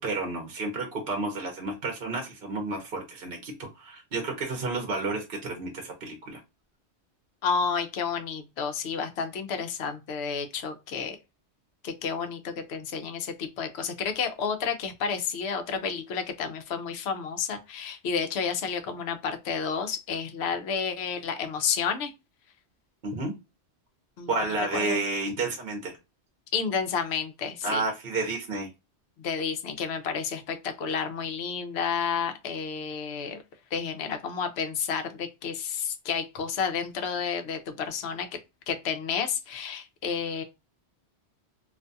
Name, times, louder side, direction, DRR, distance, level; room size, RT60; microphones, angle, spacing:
voice 1, 0.0-6.4 23.0-23.3 24.3-26.0 27.6-28.7, right 3 dB, 55° right, 0.9 m, -31 dB
voice 2, 7.4-11.2 11.8-22.1 24.2-24.3 24.6-25.0 26.5-27.8 29.2-33.4 33.7-38.3 38.7-40.4, left 6 dB, 75° left, 0.8 m, -31 dB
2.5 x 2.3 x 2.5 m
omnidirectional pair, 1.1 m